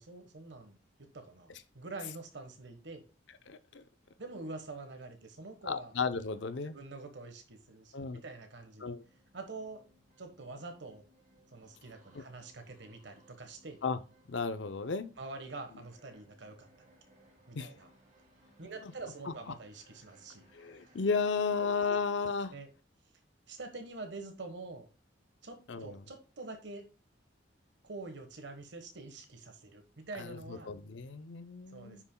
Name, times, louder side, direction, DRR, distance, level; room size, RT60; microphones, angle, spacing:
voice 1, 0.0-3.0 4.2-5.9 6.6-8.9 9.3-9.8 10.2-11.0 11.5-13.8 15.2-16.7 17.5-17.9 18.6-20.4 21.6-21.7 22.5-22.7 23.5-24.9 25.4-26.9 27.8-30.7 31.7-32.0, right 3 dB, 65° right, 1.2 m, -46 dB
voice 2, 3.5-3.8 5.6-6.8 7.9-8.2 8.8-9.0 12.1-12.2 13.8-14.0 14.3-15.1 17.5-17.7 18.8-18.9 19.2-19.3 20.5-22.5 25.7-26.0 30.1-32.0, left 5 dB, 70° left, 0.6 m, -34 dB
sound 1, 8.4-21.7, right 1 dB, 45° right, 2.5 m, -65 dB
9.7 x 6.0 x 2.2 m
head